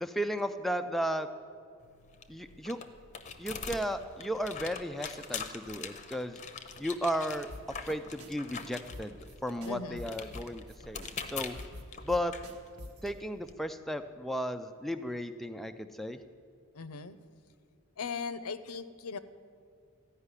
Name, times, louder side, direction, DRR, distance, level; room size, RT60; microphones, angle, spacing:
voice 1, 0.0-1.3 2.3-2.8 3.4-6.4 6.8-7.5 7.9-9.2 9.4-11.6 12.0-12.3 13.0-16.2, equal, ahead, 7 dB, 0.3 m, -34 dB
sound 1, 1.8-13.5, left 6 dB, 35° left, 0.7 m, -44 dB
sound 2, 7.5-7.9 8.2-8.3 8.6-8.7 8.9-9.4 9.6-10.8 11.0-11.1 11.4-13.1, left 1 dB, 75° right, 1.4 m, -46 dB
voice 2, 9.7-10.1 16.7-17.2 18.0-19.2, left 5 dB, 80° left, 13 dB, 0.6 m, -38 dB
14.5 x 5.6 x 9.7 m, 2.4 s
head